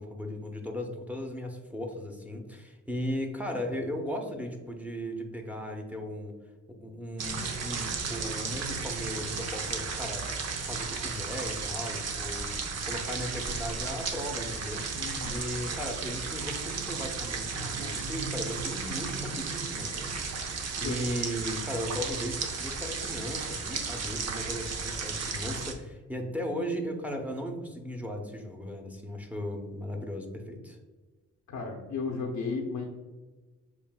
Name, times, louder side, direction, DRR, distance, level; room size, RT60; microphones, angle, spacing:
voice 1, 0.0-6.4 6.7-10.3 10.6-30.8, equal, 5° right, 2 dB, 0.8 m, -37 dB
sound 1, 7.2-25.7, right 4 dB, 55° right, 0.7 m, -34 dB
voice 2, 14.9-15.4 20.8-21.0 31.5-32.8, left 4 dB, 85° left, -2 dB, 0.9 m, -34 dB
7.0 x 2.6 x 2.3 m, 1.2 s
cardioid pair, 75°, 31 cm